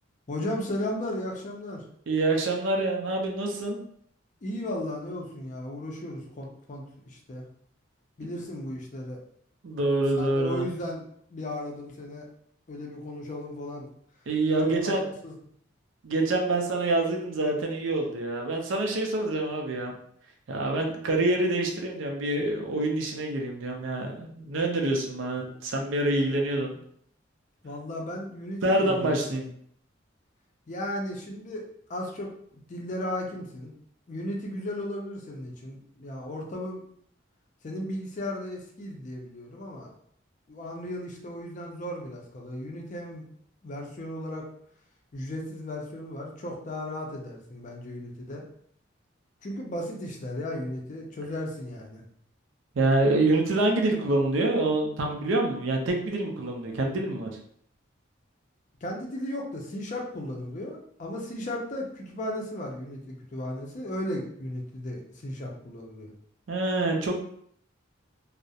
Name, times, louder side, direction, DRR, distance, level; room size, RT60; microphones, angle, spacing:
voice 1, 0.3-1.8 4.4-7.5 8.2-9.2 10.2-11.0 11.3-12.3 12.7-13.9 14.6-15.3 27.6-29.5 30.7-31.6 31.9-32.3 32.7-33.7 34.1-36.8 37.6-39.9 40.5-43.3 43.6-44.5 45.1-48.4 49.4-52.0 58.8-66.1, left 1 dB, 40° left, 0 dB, 0.4 m, -35 dB
voice 2, 2.1-3.8 8.2-8.3 9.6-10.6 14.3-15.0 16.0-19.9 20.5-26.8 28.6-29.5 52.8-57.3 66.5-67.2, right 2 dB, 70° right, 1 dB, 0.5 m, -26 dB
2.3 x 2.0 x 2.7 m, 0.66 s
head